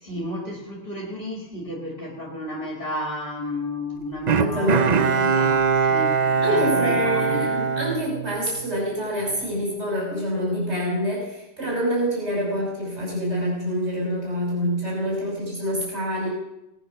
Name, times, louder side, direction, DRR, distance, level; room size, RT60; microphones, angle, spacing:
voice 1, 0.0-7.6, left 1 dB, 45° left, -2 dB, 2.5 m, -33 dB
Bowed string instrument, 4.3-8.8 9.2-9.3, right 5 dB, 45° right, 0.6 m, -22 dB
voice 2, 4.4-5.4 6.4-16.3, equal, 65° right, -4 dB, 5.8 m, -26 dB
18.5 x 10.0 x 6.2 m, 0.90 s
omnidirectional pair, 1.2 m